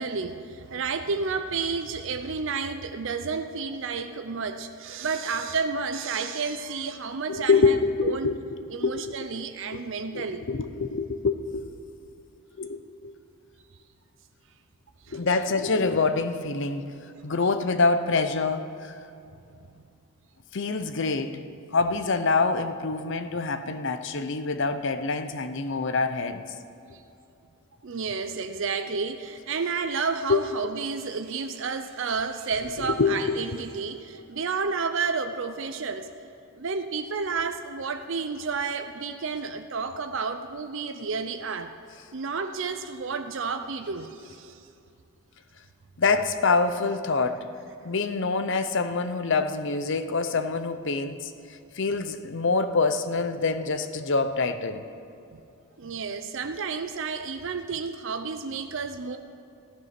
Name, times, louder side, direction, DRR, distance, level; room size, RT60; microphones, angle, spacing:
voice 1, 0.0-7.8 8.0-8.3 8.7-10.4 15.1-15.4 17.3-17.4 23.7-23.8 27.8-36.1 36.6-41.7 42.1-44.6 55.3-55.4 55.8-59.2, right 5 dB, 55° right, 7 dB, 0.5 m, -31 dB
voice 2, 7.3-9.2 9.7-9.8 10.1-11.6 12.6-13.1 15.1-16.9 17.2-18.9 20.5-21.4 21.7-26.4 30.3-30.4 32.8-33.4 46.0-47.4 47.8-51.3 51.7-54.8, left 4 dB, 55° left, 10 dB, 0.7 m, -25 dB
14.5 x 11.0 x 5.9 m, 2.6 s
head